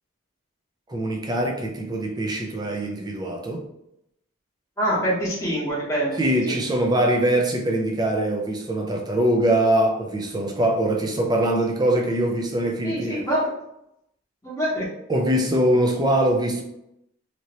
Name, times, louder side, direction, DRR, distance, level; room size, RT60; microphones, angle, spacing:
voice 1, 0.9-3.7 6.2-13.2 15.1-16.6, right 1 dB, 20° right, 0.4 m, -22 dB
voice 2, 4.8-6.2 6.5-6.6 12.8-13.5 14.4-14.8, equal, 15° left, 0.8 m, -25 dB
2.9 x 2.7 x 2.9 m
head